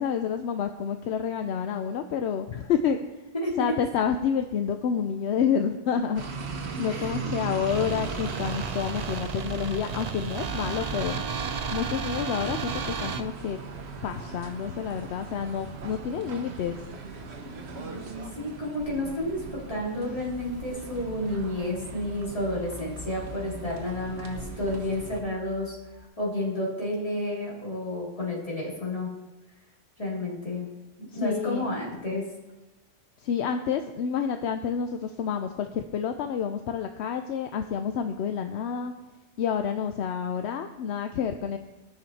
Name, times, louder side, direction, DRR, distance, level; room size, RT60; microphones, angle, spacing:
voice 1, 0.0-3.0 3.6-6.2 6.5-11.2 11.7-13.6 14.0-16.8 31.2-31.7 33.2-38.9 39.4-41.6, left 7 dB, 75° left, 7 dB, 0.8 m, -29 dB
sound 1, 6.2-25.2, right 4 dB, 65° right, 1.2 m, -39 dB
sound 2, 7.7-13.2, right 6 dB, 45° right, 0.6 m, -33 dB
voice 2, 17.8-25.8 26.2-29.1 30.0-30.7 31.1-32.2, left 1 dB, 30° left, -6 dB, 3.1 m, -31 dB
sound 3, 19.8-26.0, left 1 dB, 85° right, 3.0 m, -46 dB
16.0 x 6.2 x 4.1 m, 1.1 s
omnidirectional pair, 1.2 m